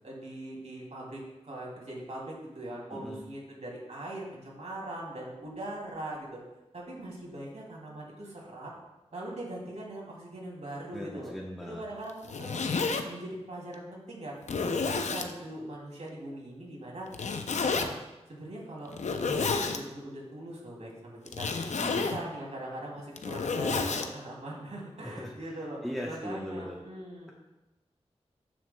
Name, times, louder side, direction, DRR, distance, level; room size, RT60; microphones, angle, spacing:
voice 1, 0.0-6.4 6.7-8.7 9.1-11.3 11.6-14.4 14.6-17.1 17.7-18.0 18.3-21.5 21.9-27.3, right 1 dB, 75° right, -3 dB, 2.6 m, -41 dB
voice 2, 2.9-3.2 10.9-11.8 21.8-22.1 25.0-26.8, equal, ahead, -2 dB, 0.8 m, -39 dB
Zipper (clothing), 12.1-13.0 13.7-13.8 14.4-15.3 17.1-17.9 18.9-19.8 21.3-22.2 23.0-24.1, left 4 dB, 85° left, 0.5 m, -30 dB
13.0 x 6.3 x 2.2 m, 1.0 s
wide cardioid pair, 65°, 12 cm